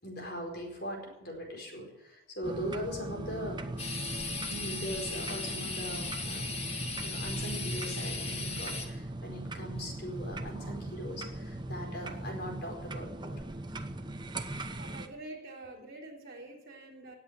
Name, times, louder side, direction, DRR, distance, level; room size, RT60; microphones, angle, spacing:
voice 1, 0.0-3.7 4.5-6.5 7.0-13.4, equal, 50° left, 1 dB, 4.6 m, -40 dB
sound 1, 2.4-15.1, right 1 dB, 20° right, 0.9 m, -39 dB
sound 2, 3.8-8.9, left 4 dB, 30° left, 1.8 m, -37 dB
voice 2, 14.7-17.1, right 2 dB, 45° right, -3 dB, 4.0 m, -46 dB
18.5 x 7.9 x 8.4 m, 0.90 s
head